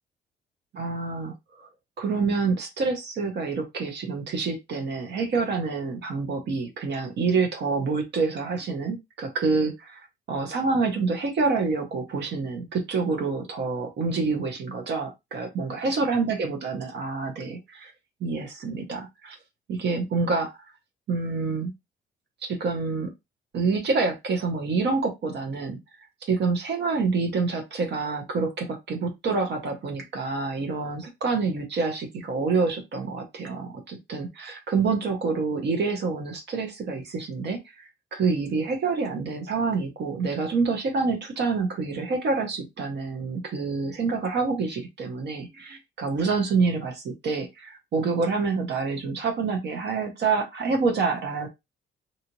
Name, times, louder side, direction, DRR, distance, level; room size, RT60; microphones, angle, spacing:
voice 1, 0.7-1.7 2.0-17.9 18.2-19.4 19.7-20.5 21.1-21.7 22.4-23.1 23.5-25.8 26.2-51.5, right 4 dB, 60° right, 4 dB, 0.8 m, -27 dB
2.8 x 2.4 x 2.9 m, 0.21 s
cardioid pair, 90°, 20 cm